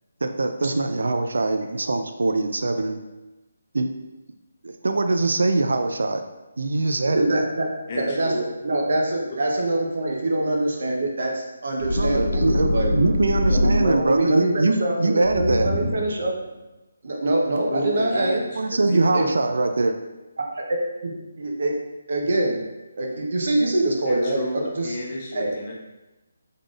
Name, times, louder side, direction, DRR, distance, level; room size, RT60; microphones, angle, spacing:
voice 1, 0.2-3.0 3.7-3.9 4.6-6.2 6.6-7.4 11.9-15.7 18.5-20.0, right 2 dB, 80° right, 6 dB, 0.3 m, -23 dB
voice 2, 7.1-8.3 8.6-12.5 12.7-12.9 13.5-16.3 17.0-18.4 18.9-19.2 20.5-21.8 22.1-22.6 23.0-24.9 25.3-25.5, right 1 dB, 60° right, 0 dB, 0.7 m, -24 dB
voice 3, 7.9-8.4 17.7-19.3 24.1-25.7, left 1 dB, 30° left, -3 dB, 0.7 m, -32 dB
sound 1, 11.8-14.3 15.2-16.2, left 1 dB, 75° left, 0.9 m, -23 dB
3.6 x 3.6 x 2.4 m, 1.0 s
hypercardioid pair, 165°, 0 cm